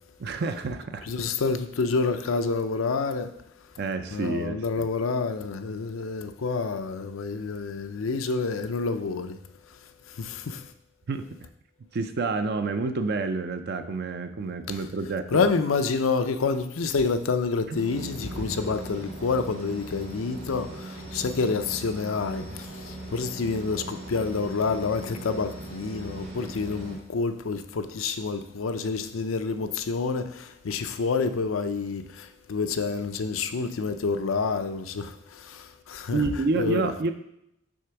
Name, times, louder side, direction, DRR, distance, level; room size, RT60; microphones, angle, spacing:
voice 1, 0.2-1.1 3.8-4.9 11.1-11.3 11.9-15.4 17.7-17.8 36.1-37.1, right 3 dB, 55° right, 0.5 m, -29 dB
voice 2, 1.1-3.3 4.1-9.4 10.1-10.7 15.3-36.2 36.6-36.9, left 4 dB, 85° left, 0.5 m, -28 dB
sound 1, 17.7-27.0, right 1 dB, 70° right, 2.7 m, -39 dB
6.4 x 3.4 x 5.8 m
head